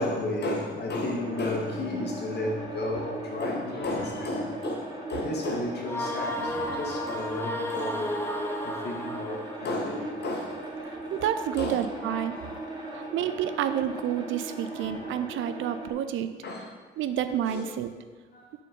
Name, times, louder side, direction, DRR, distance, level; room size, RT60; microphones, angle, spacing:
voice 1, 0.0-4.8 5.1-8.0 8.6-10.5 11.6-12.5 14.7-15.0 16.4-16.7 17.5-17.7 18.3-18.4, left 1 dB, 55° left, 0 dB, 1.6 m, -32 dB
sound 1, 0.9-15.9, right 1 dB, 25° right, 1.9 m, -38 dB
sound 2, 5.8-9.7, left 1 dB, 10° left, 0.8 m, -33 dB
voice 2, 11.1-12.3 12.9-16.3 17.0-17.9, right 10 dB, 80° right, 10 dB, 0.5 m, -29 dB
6.3 x 4.3 x 5.2 m, 1.4 s
cardioid pair, 90°, 20 cm